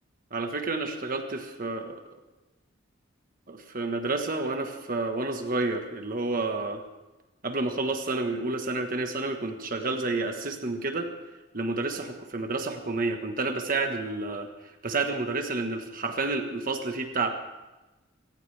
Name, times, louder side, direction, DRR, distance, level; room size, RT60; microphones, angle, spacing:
voice 1, 0.3-2.0 3.5-6.8 7.4-11.1 11.5-14.5 14.8-17.3, right 3 dB, 45° right, 5 dB, 1.5 m, -30 dB
27.0 x 15.0 x 3.4 m, 1.1 s
head